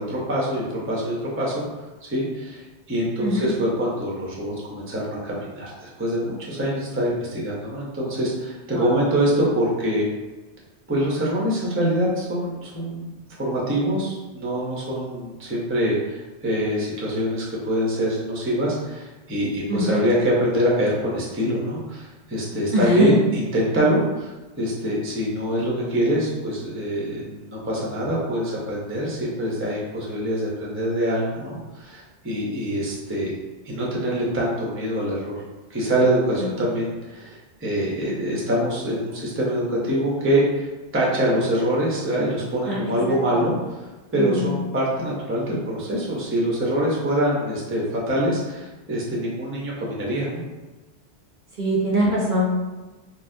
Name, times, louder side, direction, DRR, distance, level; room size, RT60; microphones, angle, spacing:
voice 1, 0.0-1.6 2.1-10.1 10.9-24.3 24.6-33.4 33.6-35.4 35.7-40.7 40.9-43.5 44.1-50.4, equal, 15° right, -4 dB, 0.5 m, -24 dB
voice 2, 19.7-20.0 22.7-23.1 42.7-42.8 43.1-43.4 44.2-44.5 51.6-52.6, equal, 55° right, -4 dB, 0.7 m, -22 dB
4.1 x 2.0 x 2.6 m, 1.1 s
omnidirectional pair, 1.2 m